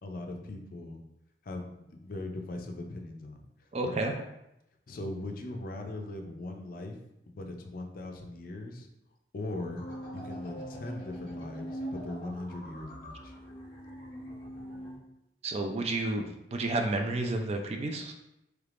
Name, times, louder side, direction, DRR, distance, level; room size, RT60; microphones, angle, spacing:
voice 1, 0.0-1.1 1.4-4.0 4.9-7.0 7.3-8.9 9.3-9.9 10.1-13.3, left 2 dB, 55° left, 4 dB, 0.5 m, -40 dB
voice 2, 3.7-4.1 15.4-16.2 16.5-18.1, right 2 dB, 35° right, 4 dB, 0.3 m, -30 dB
sound 1, 9.7-15.0, equal, 30° left, 1.2 m, -42 dB
3.3 x 3.2 x 2.4 m, 0.86 s
head